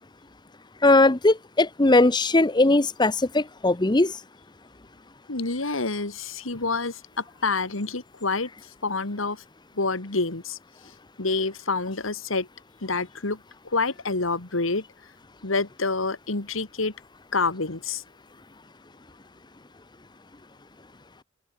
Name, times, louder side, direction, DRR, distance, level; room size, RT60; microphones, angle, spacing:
voice 1, 0.8-4.1, left 2 dB, 20° left, 0.9 m, -19 dB
voice 2, 5.3-8.5 8.8-9.4 9.8-10.6 11.2-12.5 12.8-13.4 13.6-14.8 15.4-16.9 17.3-18.0, left 3 dB, 85° left, 2.2 m, -27 dB
open air
head